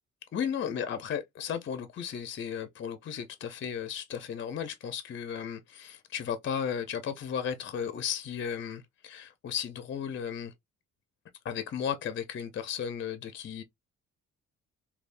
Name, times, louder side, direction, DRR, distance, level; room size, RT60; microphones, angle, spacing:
voice 1, 0.3-10.5 11.4-13.6, left 8 dB, 40° left, 0.6 m, -35 dB
3.4 x 2.3 x 2.5 m
cardioid pair, 90°, 30 cm